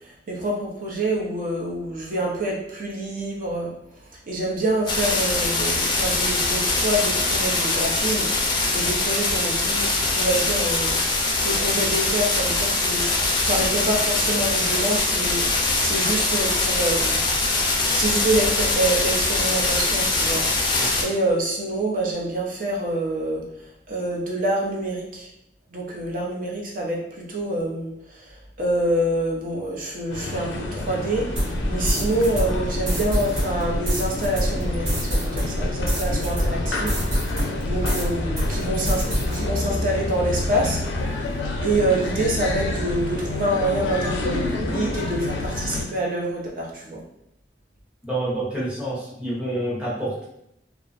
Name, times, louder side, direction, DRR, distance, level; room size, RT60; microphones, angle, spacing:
voice 1, 0.3-3.7 4.1-11.0 11.4-13.1 13.4-17.3 17.9-20.4 21.0-23.4 23.9-25.3 25.7-37.0 37.3-39.0 39.3-40.8 41.6-47.0, right 1 dB, 50° right, -2 dB, 0.6 m, -26 dB
sound 1, 4.9-21.0, left 2 dB, 25° left, 0.4 m, -22 dB
sound 2, 30.1-45.8, left 2 dB, 90° left, 0.4 m, -28 dB
sound 3, 31.4-38.1 38.4-39.4, equal, 90° right, 0.8 m, -26 dB
voice 2, 48.0-50.2, right 1 dB, 5° right, -8 dB, 0.7 m, -28 dB
2.5 x 2.0 x 2.5 m, 0.79 s
head